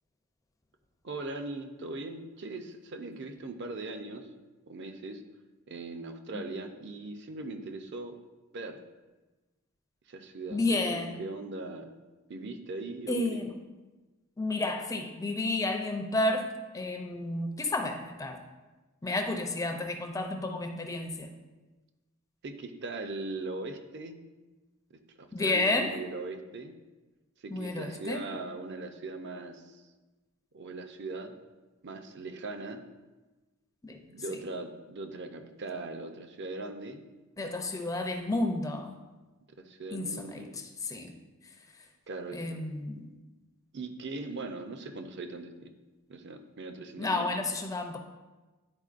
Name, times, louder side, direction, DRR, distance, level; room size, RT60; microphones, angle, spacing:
voice 1, 1.0-4.3 4.7-5.2 5.7-8.2 8.5-8.8 10.1-11.9 12.3-13.4 22.4-24.2 25.2-26.7 27.4-29.8 30.5-31.3 31.8-32.8 34.1-37.0 39.6-40.7 42.1-42.6 43.7-45.7 46.1-47.3, right 2 dB, 50° right, 6 dB, 0.5 m, -40 dB
voice 2, 10.5-11.1 13.1-13.5 14.4-16.5 16.7-18.4 19.0-21.3 25.3-26.0 27.5-28.2 33.8-34.0 34.3-34.4 37.4-38.9 39.9-40.4 40.8-41.1 42.3-43.1 47.0-48.0, left 2 dB, 15° left, 4 dB, 0.4 m, -31 dB
10.5 x 4.4 x 2.5 m, 1.2 s
head